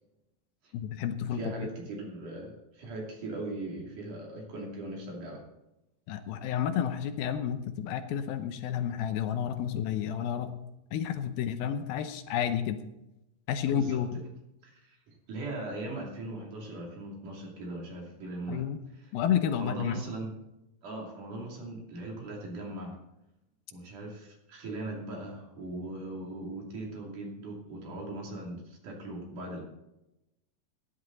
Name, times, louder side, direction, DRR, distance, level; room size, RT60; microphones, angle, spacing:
voice 1, 0.7-1.7 6.1-10.6 10.9-12.8 13.5-14.1 18.5-18.8 19.1-20.0, left 9 dB, 80° left, 9 dB, 2.6 m, -31 dB
voice 2, 1.3-5.4 13.7-14.1 14.6-18.7 18.9-19.1 19.6-20.3 20.8-23.0 23.7-29.6, right 2 dB, 55° right, -1 dB, 4.2 m, -39 dB
16.0 x 10.5 x 4.0 m, 0.90 s
omnidirectional pair, 4.4 m